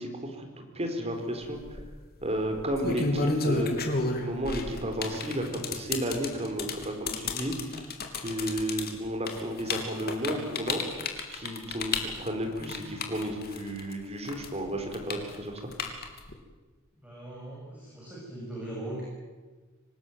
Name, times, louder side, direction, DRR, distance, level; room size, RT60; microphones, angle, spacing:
voice 1, 0.0-1.8 2.2-3.7 4.1-7.5 8.1-10.8 11.3-15.6, equal, 30° right, 4 dB, 4.5 m, -33 dB
sound 1, 1.5-1.8 2.6-13.9 14.3-16.3, left 3 dB, 50° left, 3.3 m, -31 dB
voice 2, 17.0-19.0, right 1 dB, 5° right, -6 dB, 7.4 m, -40 dB
26.0 x 19.5 x 9.5 m, 1.3 s
head